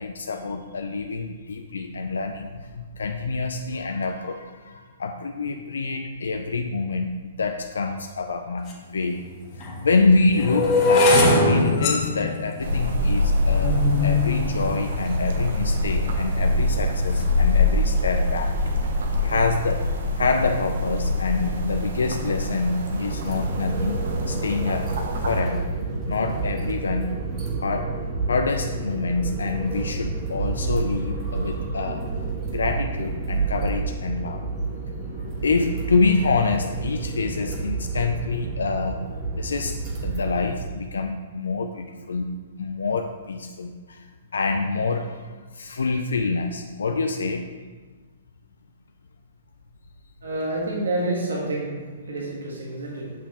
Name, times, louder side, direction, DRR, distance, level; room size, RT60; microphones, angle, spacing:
voice 1, 0.0-9.3 9.6-18.6 19.2-24.0 24.3-25.0 25.2-25.7 26.1-27.2 27.6-27.9 28.3-32.0 32.5-34.4 35.4-44.0 44.3-47.5, left 4 dB, 85° left, 5 dB, 0.4 m, -26 dB
sound 1, 8.7-8.8 9.5-15.7 16.3-16.7 17.0-17.4, left 2 dB, 35° left, 1.2 m, -22 dB
sound 2, 12.6-25.4, left 1 dB, 70° right, 0.9 m, -24 dB
sound 3, 23.0-40.6, right 3 dB, 30° right, 1.3 m, -29 dB
voice 2, 50.2-53.1, right 2 dB, 90° right, -3 dB, 1.3 m, -28 dB
6.1 x 5.9 x 2.9 m, 1.4 s
hypercardioid pair, 135°, 0 cm